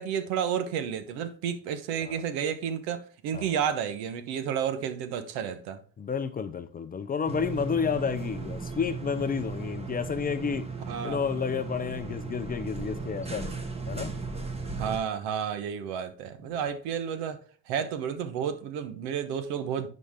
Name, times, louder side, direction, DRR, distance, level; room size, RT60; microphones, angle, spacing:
voice 1, 0.0-5.8 10.9-11.2 14.8-19.9, right 8 dB, 70° right, 1.2 m, -31 dB
voice 2, 6.0-10.7 11.0-13.6 13.9-14.2 16.4-16.6, left 6 dB, 20° left, 0.6 m, -31 dB
sound 1, 7.3-15.0, right 4 dB, 15° right, 1.2 m, -36 dB
11.0 x 4.4 x 3.6 m
supercardioid pair, 105°, 41 cm